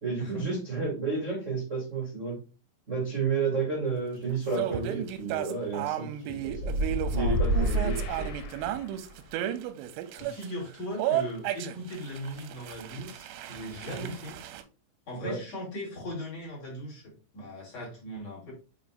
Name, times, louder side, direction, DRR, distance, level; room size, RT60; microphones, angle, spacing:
voice 1, 0.0-2.4 2.9-6.7 7.1-8.3 13.9-14.1 15.2-15.4, right 4 dB, 40° right, -5 dB, 1.1 m, -31 dB
sound 1, 4.6-10.5 11.0-14.6, right 12 dB, 90° right, 3.1 m, -34 dB
sound 2, 6.5-9.1, equal, 85° left, 3.5 m, -29 dB
voice 2, 10.2-14.4 15.1-18.5, equal, 40° left, -5 dB, 3.2 m, -39 dB
7.2 x 5.2 x 2.5 m, 0.34 s
omnidirectional pair, 5.6 m